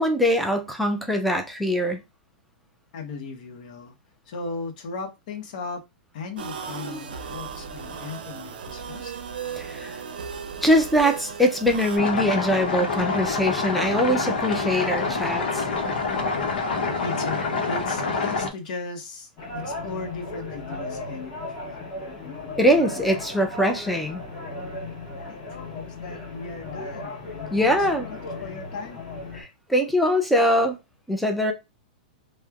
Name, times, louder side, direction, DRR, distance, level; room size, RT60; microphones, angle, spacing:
voice 1, 0.0-2.0 9.6-10.0 10.6-15.6 22.6-24.2 27.5-28.1 29.3-30.8 31.1-31.5, equal, ahead, 0.4 m, -22 dB
voice 2, 2.9-3.9 4.3-5.8 6.1-9.1 17.0-21.8 25.1-29.0, left 3 dB, 55° left, 0.9 m, -37 dB
sound 1, 6.4-12.0, right 6 dB, 85° right, 0.6 m, -36 dB
sound 2, 12.0-18.5, left 4 dB, 85° left, 0.8 m, -26 dB
sound 3, 19.4-29.4, left 2 dB, 35° left, 1.3 m, -36 dB
3.0 x 2.1 x 2.3 m
hypercardioid pair, 150°, 5 cm